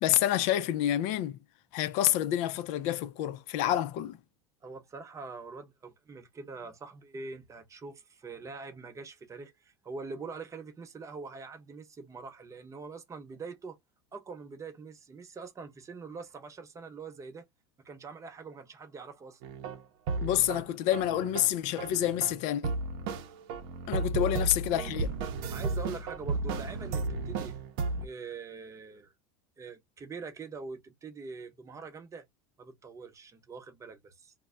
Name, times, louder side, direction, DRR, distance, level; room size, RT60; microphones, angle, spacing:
voice 1, 0.0-1.4 1.7-4.2 20.2-22.8 23.9-25.1, left 12 dB, 65° left, 0.4 m, -28 dB
voice 2, 4.6-13.8 14.1-17.5 17.8-19.4 24.2-24.3 25.5-27.6 28.0-29.1 29.6-32.2 32.6-34.3, right 4 dB, 20° right, 0.7 m, -44 dB
sound 1, 19.4-20.7 20.9-22.4 22.6-28.1, right 3 dB, 70° right, 0.6 m, -34 dB
2.1 x 2.1 x 3.5 m
supercardioid pair, 110°, 13 cm